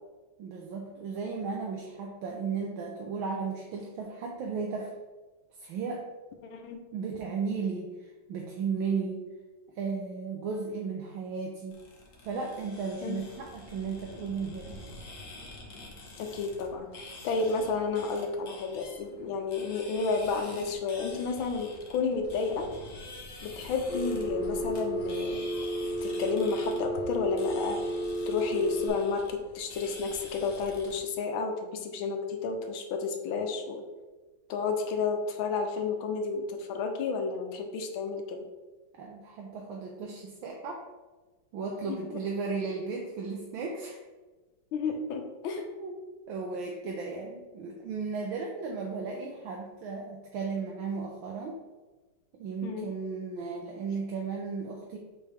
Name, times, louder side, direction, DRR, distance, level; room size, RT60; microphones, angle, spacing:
voice 1, 0.4-4.9 5.6-6.0 6.9-9.3 9.7-11.8 12.2-14.8 39.0-40.8 41.5-44.0 45.8-45.9 46.3-51.6 52.4-55.0, right 5 dB, 90° right, 0 dB, 1.5 m, -35 dB
sound 1, 11.7-31.0, left 2 dB, 45° left, 1.3 m, -47 dB
voice 2, 16.2-22.7 23.4-25.4 26.0-27.8 28.3-33.8 34.5-38.4 41.9-42.2 44.7-45.6 52.6-52.9, left 4 dB, 90° left, 5 dB, 1.6 m, -31 dB
Telephone, 23.9-28.9, right 1 dB, 5° right, 1.8 m, -32 dB
7.3 x 4.1 x 3.4 m, 1.2 s
omnidirectional pair, 2.1 m